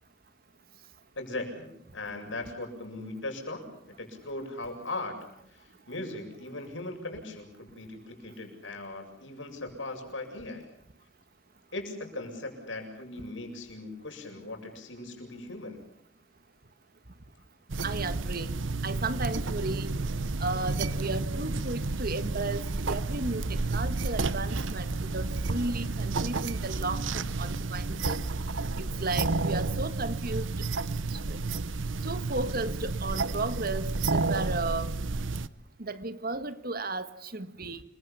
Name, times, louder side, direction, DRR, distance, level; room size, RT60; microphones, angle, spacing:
voice 1, 1.2-5.2 5.5-10.6 11.7-15.8, left 2 dB, 75° left, 4 dB, 7.8 m, -39 dB
sound 1, 17.7-35.5, right 3 dB, 85° right, 1.0 m, -31 dB
voice 2, 17.8-18.6 18.8-19.9 20.4-28.2 28.8-30.5 31.1-31.4 32.0-34.9 35.8-37.8, right 3 dB, 50° right, 11 dB, 1.7 m, -34 dB
29.5 x 23.5 x 7.1 m, 0.74 s
head